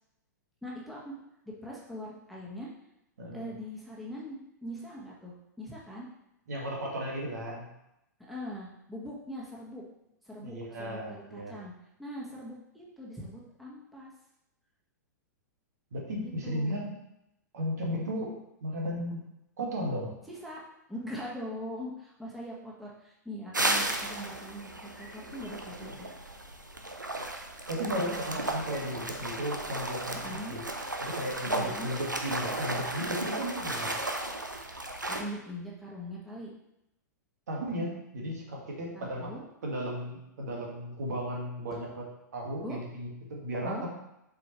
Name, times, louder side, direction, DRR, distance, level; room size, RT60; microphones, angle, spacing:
voice 1, 0.6-1.1 1.6-2.7 3.3-6.1 8.3-9.8 10.2-11.7 12.0-14.1 16.2-16.8 20.3-20.6 20.9-26.1 27.8-28.4 30.1-30.5 31.5-31.9 35.1-36.5 38.9-39.4 42.6-42.8 43.6-43.9, equal, ahead, -6 dB, 1.5 m, -42 dB
voice 2, 3.2-3.5 6.5-7.7 10.4-11.6 15.9-17.0 17.5-19.2 19.6-20.2 27.7-30.6 31.0-34.0 37.5-39.3 39.6-42.1 42.3-43.9, equal, 60° right, -1 dB, 1.9 m, -35 dB
sound 1, 23.5-35.2, right 1 dB, 85° right, 0.8 m, -34 dB
7.6 x 5.3 x 3.2 m, 0.85 s
figure-of-eight pair, 105°, 10 cm